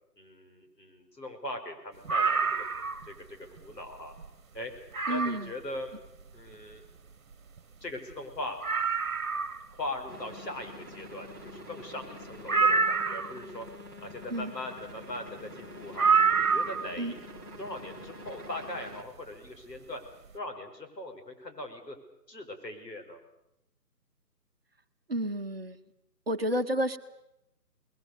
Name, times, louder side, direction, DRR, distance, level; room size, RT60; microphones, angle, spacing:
voice 1, 0.2-2.6 3.1-4.1 4.5-4.7 5.1-5.9 6.3-6.8 7.8-8.6 9.7-13.7 14.0-16.1 16.4-17.2 17.6-20.0 20.3-22.0 22.3-23.2, left 1 dB, 80° left, 4 dB, 5.5 m, -40 dB
sound 1, 2.0-3.1 3.6-3.7 4.2-4.3 4.9-5.5 7.3-7.4 7.6-7.7 8.1-8.2 8.6-9.7 12.5-13.4 16.0-17.0 18.3-18.4, right 5 dB, 55° right, 1.2 m, -26 dB
voice 2, 5.1-5.5 14.3-14.5 17.0-17.1 25.1-25.8 26.3-27.0, right 1 dB, 35° right, 8 dB, 1.0 m, -30 dB
sound 2, 10.1-19.0, left 1 dB, 15° left, 1.0 m, -46 dB
26.5 x 21.0 x 6.8 m, 0.83 s
figure-of-eight pair, 170°, 49 cm